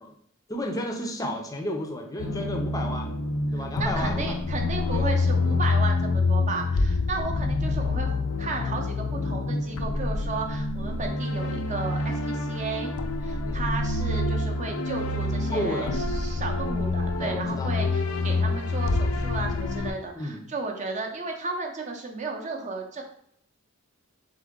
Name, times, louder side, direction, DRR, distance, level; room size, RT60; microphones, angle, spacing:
voice 1, 0.5-3.1 3.5-4.4 4.9-5.1 13.4-13.7 15.5-16.0 17.2-18.4 20.1-20.4, left 1 dB, 15° left, 3 dB, 0.5 m, -32 dB
sound 1, 2.2-19.9, left 3 dB, 85° left, 0.4 m, -27 dB
voice 2, 3.5-12.9 13.2-23.0, right 3 dB, 35° right, 2 dB, 0.7 m, -34 dB
3.8 x 3.7 x 3.6 m, 0.69 s
head